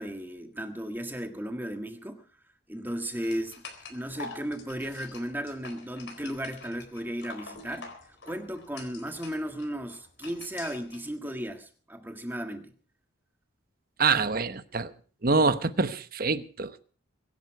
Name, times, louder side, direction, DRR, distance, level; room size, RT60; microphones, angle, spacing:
voice 1, 0.0-2.2 2.7-3.6 3.9-7.9 8.3-12.7, equal, 10° right, 1.6 m, -35 dB
sound 1, 3.2-11.0, left 4 dB, 55° left, 4.0 m, -46 dB
voice 2, 14.0-14.9 15.2-16.8, right 4 dB, 45° right, 1.0 m, -25 dB
23.5 x 11.0 x 4.7 m
head